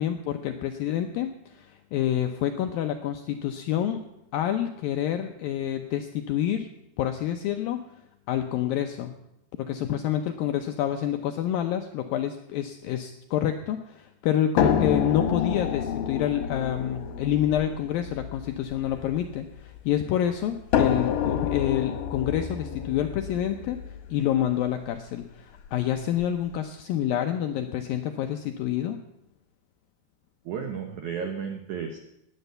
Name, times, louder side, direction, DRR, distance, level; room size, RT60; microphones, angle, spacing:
voice 1, 0.0-4.0 4.3-6.7 7.0-7.8 8.3-9.1 9.6-23.8 24.1-29.0, left 11 dB, 80° left, 6 dB, 2.1 m, -28 dB
sound 1, 14.6-19.8 20.7-24.7 25.7-25.8 26.2-26.3, left 8 dB, 65° left, 2.6 m, -28 dB
voice 2, 30.5-32.0, right 7 dB, 80° right, 5 dB, 1.7 m, -33 dB
17.5 x 9.9 x 6.8 m, 0.84 s
omnidirectional pair, 5.0 m